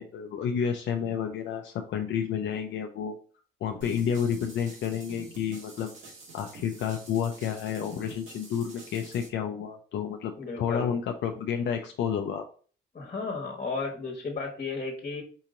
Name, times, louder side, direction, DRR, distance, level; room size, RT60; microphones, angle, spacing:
voice 1, 0.0-3.1 3.6-5.9 6.3-12.5, left 8 dB, 65° left, 4 dB, 0.5 m, -30 dB
sound 1, 3.8-9.3, right 3 dB, 75° right, 1.8 m, -48 dB
voice 2, 10.4-11.0 12.9-15.2, left 4 dB, 40° left, 1 dB, 1.3 m, -34 dB
4.6 x 2.9 x 3.7 m, 0.42 s
cardioid pair, 90°, 20 cm